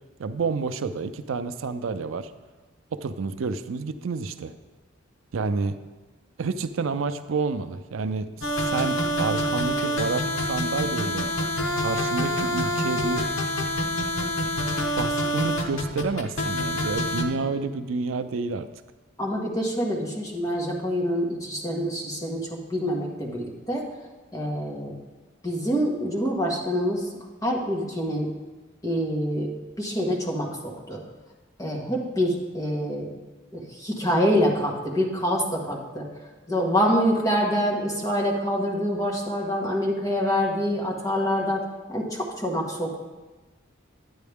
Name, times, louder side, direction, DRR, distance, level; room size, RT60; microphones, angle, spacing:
voice 1, 0.2-2.3 2.9-4.5 5.3-5.8 6.4-11.3 11.8-13.3 14.9-18.7, right 4 dB, 80° right, 11 dB, 0.4 m, -29 dB
sound 1, 8.4-17.2, left 1 dB, 90° left, 1.1 m, -26 dB
voice 2, 19.2-23.9 24.3-25.0 25.4-27.1 27.4-28.3 28.8-29.5 29.8-31.0 31.6-33.1 33.5-36.1 36.5-43.0, equal, 20° left, -2 dB, 1.5 m, -26 dB
9.6 x 9.3 x 3.5 m, 1.2 s
head